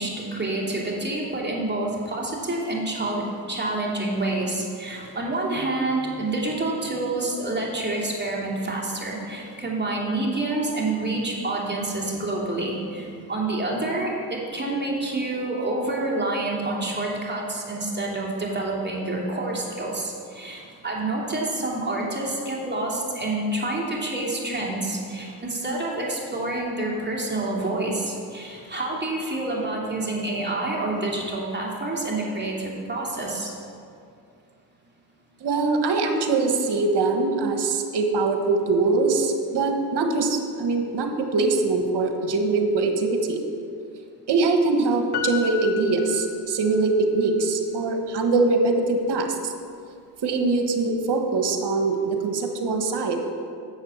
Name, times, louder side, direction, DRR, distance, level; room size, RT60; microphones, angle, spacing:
voice 1, 0.0-33.5, right 2 dB, 25° right, -3 dB, 2.8 m, -28 dB
voice 2, 35.4-43.4 44.3-49.5 50.2-53.2, right 3 dB, 65° right, 4 dB, 1.4 m, -23 dB
Piano, 45.1-46.9 47.2-47.3, left 8 dB, 60° left, 0.8 m, -33 dB
7.9 x 7.3 x 7.1 m, 2.4 s
supercardioid pair, 60°, 44 cm